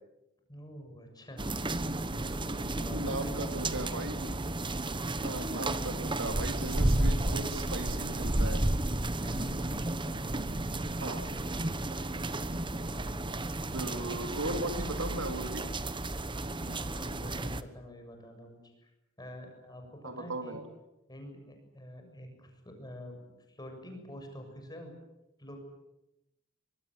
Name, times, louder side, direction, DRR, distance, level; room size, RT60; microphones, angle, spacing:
voice 1, 0.5-1.6 1.9-3.6 5.5-5.9 9.1-10.2 10.5-10.8 11.3-11.7 14.1-14.8 16.5-18.9 19.2-20.6 21.1-23.2 23.5-25.0 25.4-25.6, left 1 dB, 20° left, 4 dB, 7.0 m, -47 dB
sound 1, 1.4-17.6, right 1 dB, 25° right, 1.2 m, -32 dB
voice 2, 2.9-4.3 5.2-8.6 11.0-11.3 13.7-15.6 20.0-20.6, right 2 dB, 65° right, 6 dB, 3.5 m, -37 dB
25.0 x 22.5 x 9.2 m, 0.93 s
head